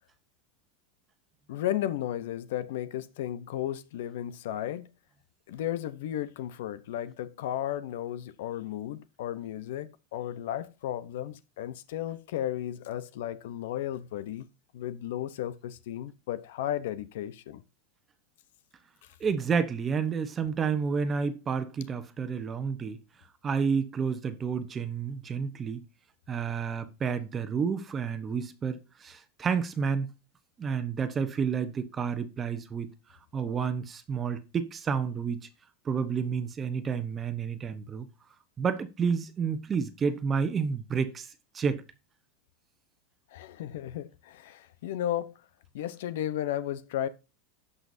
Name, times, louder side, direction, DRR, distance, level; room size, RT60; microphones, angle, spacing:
voice 1, 1.5-4.9 5.5-14.5 14.7-17.6 43.3-45.3 45.7-47.1, left 11 dB, 75° left, 0.8 m, -34 dB
voice 2, 19.2-23.0 23.4-25.8 26.3-30.1 30.6-32.9 33.3-35.4 35.8-38.1 38.6-41.3 41.5-41.8, right 6 dB, 20° right, 0.9 m, -30 dB
16.5 x 5.7 x 2.7 m
supercardioid pair, 150°, 0 cm